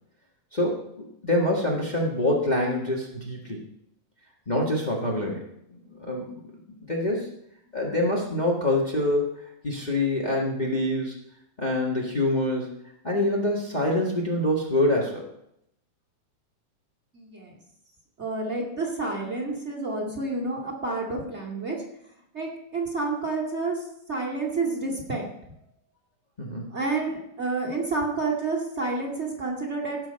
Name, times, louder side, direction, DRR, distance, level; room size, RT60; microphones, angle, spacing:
voice 1, 0.5-3.6 4.5-6.3 6.9-7.3 7.7-11.1 11.6-12.7 13.0-15.3 26.4-26.7, left 1 dB, 60° left, -2 dB, 0.4 m, -26 dB
voice 2, 17.1-17.5 18.2-21.8 22.3-25.3 26.7-30.0, right 3 dB, 20° right, 1 dB, 2.2 m, -29 dB
17.0 x 6.1 x 5.5 m, 0.77 s
omnidirectional pair, 3.9 m